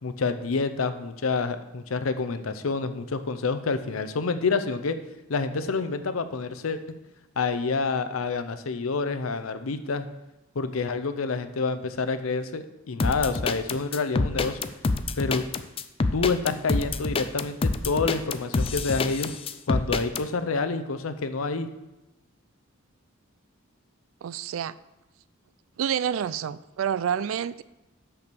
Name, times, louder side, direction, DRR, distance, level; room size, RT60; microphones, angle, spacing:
voice 1, 0.0-5.0 5.3-6.8 7.4-10.1 10.5-14.6 15.2-15.5 16.1-19.3 19.7-21.7, left 4 dB, 80° left, 10 dB, 0.6 m, -28 dB
sound 1, 13.0-20.2, left 3 dB, 25° left, 0.4 m, -26 dB
voice 2, 24.2-24.7 25.8-27.6, right 8 dB, 70° right, 17 dB, 0.3 m, -28 dB
6.1 x 5.6 x 6.9 m, 0.98 s
head